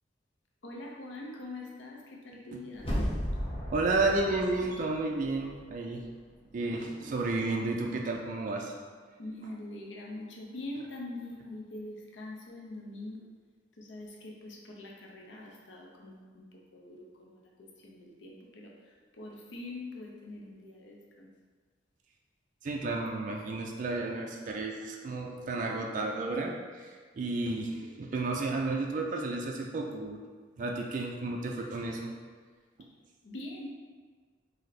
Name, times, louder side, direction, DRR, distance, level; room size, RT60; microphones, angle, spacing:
voice 1, 0.6-2.9 9.2-13.2 13.8-16.5 16.7-21.3 33.2-33.7, left 2 dB, 85° left, -2 dB, 0.6 m, -44 dB
sound 1, 2.8-5.7 6.0-6.1, equal, 30° left, 0.7 m, -35 dB
voice 2, 3.7-6.0 6.5-8.7 22.6-30.2 30.6-32.1, right 2 dB, 45° right, 0 dB, 0.3 m, -32 dB
3.2 x 2.7 x 4.0 m, 1.5 s
head